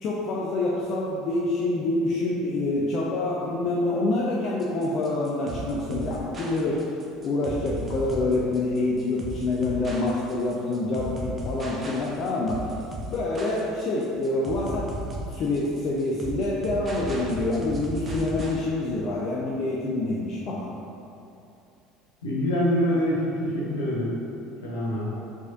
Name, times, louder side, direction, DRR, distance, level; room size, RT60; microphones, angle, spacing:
voice 1, 0.0-6.8 7.2-12.6 13.1-14.9 15.3-20.7, left 2 dB, 45° left, -4 dB, 0.4 m, -26 dB
sound 1, 4.6-18.6, right 1 dB, 30° right, 0.7 m, -36 dB
voice 2, 22.2-24.1 24.6-25.2, equal, 70° left, -6 dB, 1.0 m, -25 dB
4.8 x 4.1 x 2.5 m, 2.7 s
figure-of-eight pair, 65°, 0 cm